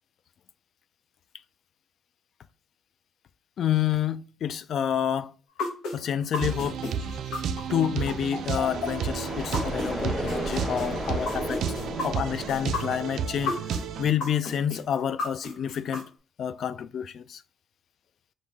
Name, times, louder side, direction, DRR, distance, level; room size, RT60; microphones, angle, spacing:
voice 1, 3.6-5.3 5.9-6.8 7.7-11.6 12.0-13.6 14.0-16.1 16.4-17.4, left 9 dB, 65° left, 0.3 m, -28 dB
sound 1, 5.6-9.9 10.3-13.8 14.2-16.0, left 3 dB, 90° left, 1.2 m, -32 dB
sound 2, 6.4-14.1, right 7 dB, 75° right, 0.3 m, -32 dB
sound 3, 8.4-14.1, equal, 15° left, 0.9 m, -35 dB
5.4 x 2.6 x 3.6 m
cardioid pair, 90°, 0 cm